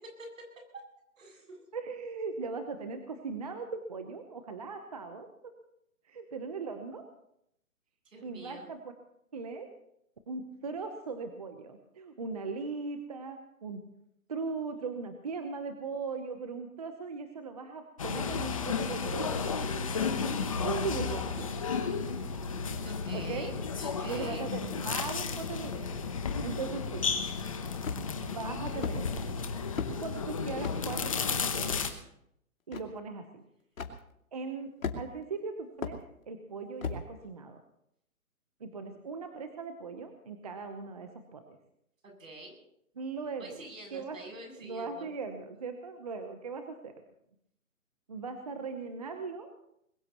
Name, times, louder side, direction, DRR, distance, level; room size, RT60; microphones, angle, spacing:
voice 1, 1.2-1.6 8.0-8.7 22.8-24.5 42.0-42.5 43.4-45.1, right 2 dB, 65° right, 2 dB, 8.0 m, -47 dB
voice 2, 1.7-5.3 6.1-7.0 8.2-8.8 9.3-9.7 10.3-13.8 14.3-19.4 20.6-21.5 23.1-23.5 24.0-25.9 26.4-27.1 28.1-29.1 30.0-31.8 32.7-33.3 34.3-34.7 35.0-36.0 36.3-37.6 38.6-41.6 43.0-43.6 43.9-44.2 44.6-46.9 48.1-49.5, right 4 dB, 25° right, 6 dB, 0.9 m, -39 dB
sound 1, 18.0-31.9, left 5 dB, 25° left, 0.9 m, -33 dB
sound 2, 27.8-28.2 28.8-29.0 29.8-30.0 30.6-30.8 31.7-31.8 32.7-32.8 33.8-33.9 34.8-35.2 35.8-36.0 36.8-37.0, left 5 dB, 65° left, 2.6 m, -34 dB
21.5 x 21.0 x 3.0 m, 0.75 s
hypercardioid pair, 170°, 43 cm